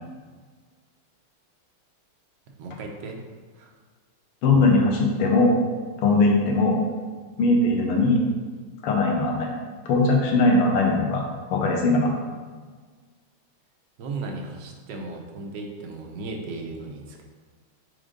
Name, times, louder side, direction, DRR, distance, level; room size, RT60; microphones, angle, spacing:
voice 1, 2.6-3.2 3.6-3.7 14.0-17.2, right 3 dB, 65° right, 1 dB, 1.2 m, -36 dB
voice 2, 4.4-5.6 6.0-6.8 7.4-8.2 8.8-9.5 9.9-11.2 11.5-12.1, left 2 dB, 90° left, 0 dB, 1.9 m, -20 dB
5.1 x 3.7 x 5.1 m, 1.5 s
omnidirectional pair, 2.4 m